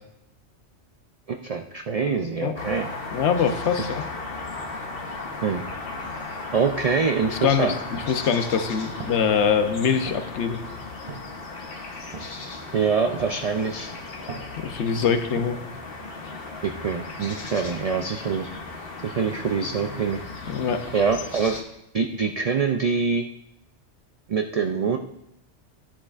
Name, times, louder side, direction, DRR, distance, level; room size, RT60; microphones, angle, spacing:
voice 1, 1.3-2.9 3.8-3.9 5.4-5.6 6.5-7.8 12.7-13.9 14.9-15.2 16.6-18.5 19.0-20.2 20.9-21.6 21.9-23.3 24.3-25.0, right 5 dB, 75° right, 5 dB, 0.3 m, -25 dB
sound 1, 2.6-21.6, left 3 dB, 55° left, 1.1 m, -36 dB
voice 2, 3.1-4.0 7.3-7.7 8.1-10.6 14.6-15.6 20.5-20.8, left 7 dB, 75° left, 7 dB, 1.0 m, -23 dB
sound 2, 7.7-15.5, right 3 dB, 35° right, 0.7 m, -44 dB
11.0 x 10.0 x 2.4 m, 0.84 s
omnidirectional pair, 1.2 m